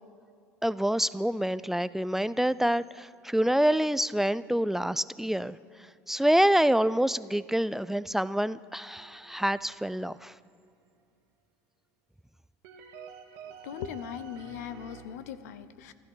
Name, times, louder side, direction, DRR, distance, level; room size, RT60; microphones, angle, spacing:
voice 1, 0.6-5.6 6.1-10.3, right 1 dB, 5° right, 16 dB, 0.3 m, -26 dB
sound 1, 8.9-10.6 12.6-15.0, right 7 dB, 75° right, 1.7 m, -49 dB
voice 2, 13.4-15.9, left 9 dB, 90° left, 14 dB, 0.7 m, -40 dB
15.0 x 12.0 x 5.6 m, 2.3 s
supercardioid pair, 95°, 8 cm